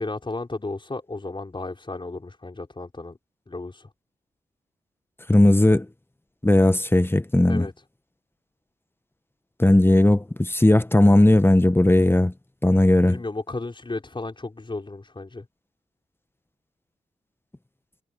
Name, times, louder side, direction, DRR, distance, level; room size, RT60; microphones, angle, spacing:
voice 1, 0.0-3.2 3.5-3.9 7.5-7.8 13.1-15.5, left 2 dB, 35° left, 5.1 m, -34 dB
voice 2, 5.3-5.8 6.4-7.7 9.6-12.3 12.6-13.2, left 1 dB, 15° left, 1.3 m, -17 dB
cardioid pair, 45°, 15 cm